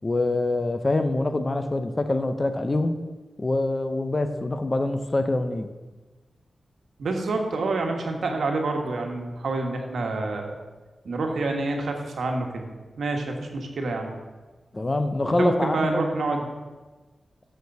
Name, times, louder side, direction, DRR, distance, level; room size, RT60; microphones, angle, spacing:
voice 1, 0.0-3.0 3.4-5.7 14.7-16.1, left 2 dB, 25° left, 8 dB, 0.5 m, -25 dB
voice 2, 7.0-10.6 11.0-12.7 13.0-14.1 15.3-16.5, right 3 dB, 85° right, 3 dB, 1.3 m, -27 dB
6.7 x 6.5 x 6.7 m, 1.3 s
wide cardioid pair, 160°, 0 cm